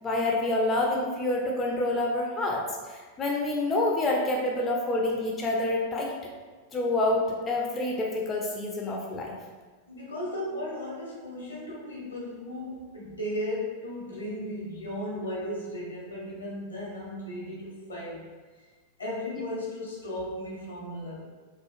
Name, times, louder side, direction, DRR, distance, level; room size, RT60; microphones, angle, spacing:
voice 1, 0.0-6.2 6.7-9.4, left 2 dB, 20° left, -1 dB, 0.3 m, -27 dB
voice 2, 9.9-18.3 19.0-21.2, left 1 dB, 75° left, -4 dB, 0.8 m, -35 dB
2.8 x 2.3 x 2.4 m, 1.4 s
figure-of-eight pair, 90°, 0 cm